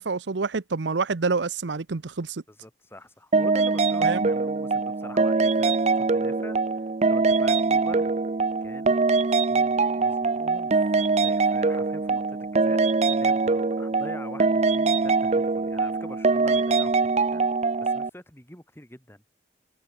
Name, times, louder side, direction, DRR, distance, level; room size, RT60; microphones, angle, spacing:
voice 1, 0.0-2.4 4.0-4.3, right 4 dB, 85° right, 0.8 m, -27 dB
voice 2, 2.5-8.1 8.6-17.5 17.8-19.2, left 1 dB, 15° left, 4.2 m, -45 dB
sound 1, 3.3-18.1, right 4 dB, 40° right, 0.5 m, -23 dB
head